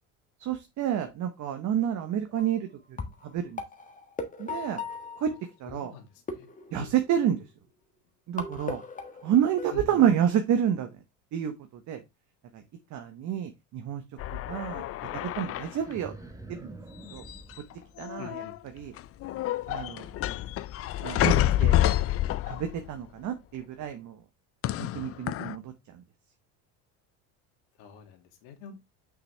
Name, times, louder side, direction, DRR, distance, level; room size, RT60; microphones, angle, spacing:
voice 1, 0.4-3.0 3.2-3.6 4.4-4.8 5.2-5.3 5.6-5.9 6.7-7.5 8.3-8.8 9.2-11.0 11.3-12.0 12.5-12.6 12.9-14.0 14.3-14.8 15.1-16.1 16.5-16.7 17.1-17.2 18.0-18.4 18.7-18.9 19.7-20.1 21.0-21.8 22.5-24.2 24.8-26.0, right 9 dB, 45° right, 7 dB, 1.1 m, -29 dB
sound 1, 2.3-2.6 3.0-5.7 6.3-7.4 8.4-9.7, left 4 dB, 20° left, 1.5 m, -38 dB
voice 2, 5.7-6.1 6.3-6.5 6.8-6.9 9.7-10.0 18.2-18.5 27.8-28.7, left 7 dB, 75° left, 4 dB, 2.4 m, -44 dB
sound 2, 14.2-15.9 17.1-17.7 18.0-18.6 19.0-22.9 24.6-25.5, left 13 dB, 35° left, 0.4 m, -28 dB
sound 3, 15.0-18.5, right 2 dB, 10° right, 1.3 m, -47 dB
6.1 x 6.0 x 3.3 m, 0.21 s
supercardioid pair, 110°, 40 cm